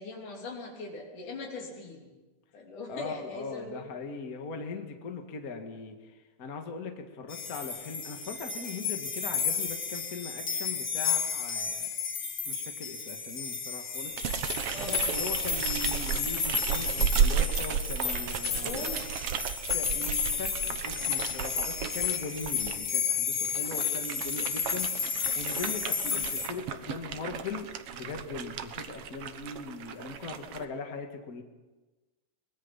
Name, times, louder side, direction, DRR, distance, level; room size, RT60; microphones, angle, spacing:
voice 1, 0.0-2.1 2.5-3.9 14.7-15.1 18.5-19.0 26.0-26.3 30.0-30.5, left 3 dB, 85° left, 0 dB, 5.0 m, -41 dB
voice 2, 2.9-11.9 12.5-14.4 14.8-19.0 19.7-31.4, left 4 dB, 35° left, 4 dB, 1.8 m, -40 dB
sound 1, 7.3-26.5, left 6 dB, 50° left, 3.4 m, -32 dB
sound 2, 14.1-22.8 23.4-30.6, right 8 dB, 60° right, 1.7 m, -34 dB
23.5 x 20.5 x 5.7 m, 1.2 s
omnidirectional pair, 3.5 m